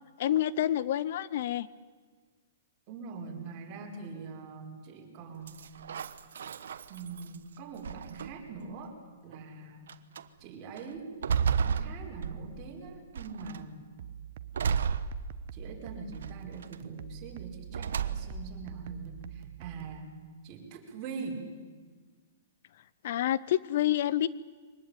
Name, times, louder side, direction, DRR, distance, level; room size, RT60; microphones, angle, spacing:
voice 1, 0.2-1.7 23.0-24.3, left 12 dB, 55° left, 19 dB, 0.7 m, -28 dB
voice 2, 2.9-5.6 6.9-8.9 9.2-9.9 10.4-11.1 11.5-13.8 15.5-20.1 20.4-21.5, right 4 dB, 30° right, 0 dB, 5.0 m, -43 dB
sound 1, 5.5-7.4 7.8-8.6 9.3-9.4 9.9-10.2 10.8-12.7 13.2-13.7 14.5-15.7 16.2-16.8 17.7-18.5, right 7 dB, 80° right, 1.2 m, -33 dB
sound 2, 14.0-20.0, right 10 dB, 50° right, 1.0 m, -45 dB
23.5 x 19.5 x 9.1 m, 1.5 s
hypercardioid pair, 155°, 0 cm